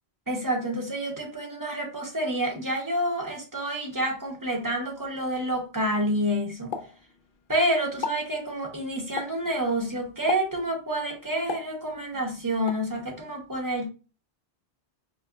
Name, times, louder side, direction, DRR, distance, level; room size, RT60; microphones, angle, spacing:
voice 1, 0.3-6.8 7.5-13.9, right 1 dB, 20° right, 0.7 m, -28 dB
Explosion, 6.7-7.6 7.9-8.3 9.2-9.5 10.3-10.7 11.5-12.2 12.7-12.9, left 7 dB, 60° left, 0.7 m, -35 dB
4.7 x 2.3 x 2.2 m
omnidirectional pair, 1.1 m